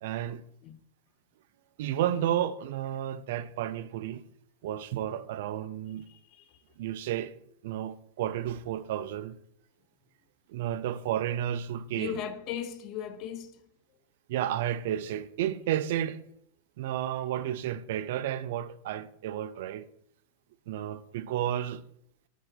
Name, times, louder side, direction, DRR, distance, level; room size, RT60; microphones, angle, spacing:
voice 1, 0.0-0.4 1.8-4.2 4.6-6.1 6.8-7.3 7.6-9.4 10.5-12.2 14.3-16.2 16.8-19.9 20.7-21.8, right 11 dB, 65° right, 0.5 m, -32 dB
voice 2, 6.1-6.6 12.0-13.6, left 9 dB, 45° left, 0.6 m, -37 dB
9.2 x 4.4 x 4.0 m
hypercardioid pair, 115°, 0 cm